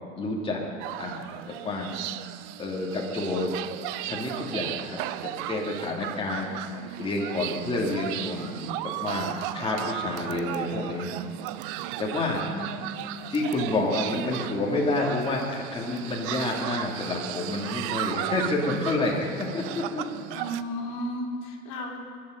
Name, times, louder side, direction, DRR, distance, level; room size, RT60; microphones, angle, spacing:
voice 1, 0.2-0.7 1.0-1.9 2.6-3.5 4.1-6.5 7.0-11.1 12.0-12.4 13.3-20.0, left 2 dB, 15° left, -3 dB, 2.7 m, -29 dB
sound 1, 0.8-20.6, right 14 dB, 40° right, 0.6 m, -35 dB
voice 2, 12.4-13.1 20.3-22.0, equal, 40° left, -3 dB, 3.7 m, -34 dB
24.0 x 11.0 x 5.2 m, 2.5 s
figure-of-eight pair, 85°, 41 cm